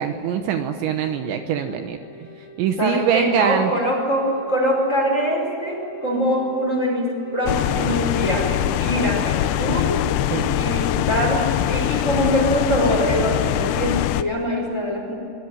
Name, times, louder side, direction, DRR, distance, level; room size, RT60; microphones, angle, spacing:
voice 1, 0.0-2.0 2.6-3.7 10.3-10.6, right 8 dB, 75° right, 6 dB, 3.1 m, -23 dB
Wind instrument woodwind instrument, 0.9-9.5, right 2 dB, 55° left, 4.2 m, -42 dB
voice 2, 2.8-10.0 10.5-15.2, equal, 15° left, 1 dB, 4.7 m, -23 dB
sound 1, 7.5-14.2, left 13 dB, 85° left, 2.4 m, -23 dB
25.0 x 19.5 x 9.6 m, 2.9 s
omnidirectional pair, 5.8 m